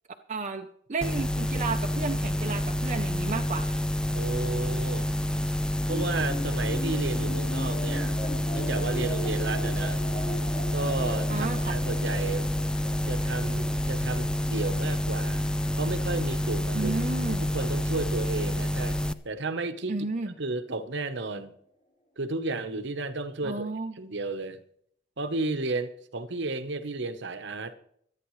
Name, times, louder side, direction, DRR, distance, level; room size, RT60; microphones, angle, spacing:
voice 1, 0.3-3.8 11.3-11.8 16.7-17.5 19.9-20.3 23.4-23.9, right 3 dB, 35° right, 4 dB, 0.7 m, -32 dB
sound 1, 1.0-19.1, left 1 dB, 5° left, 0.4 m, -28 dB
voice 2, 4.1-5.1 5.9-8.2 8.5-10.0 10.7-12.5 13.1-15.5 15.8-16.9 17.3-19.0 19.2-20.0 20.4-21.5 22.2-24.6 25.2-27.7, right 3 dB, 60° right, 10 dB, 1.0 m, -33 dB
sound 2, 5.9-18.5, left 1 dB, 35° left, 3.3 m, -40 dB
25.0 x 9.3 x 3.2 m, 0.66 s
head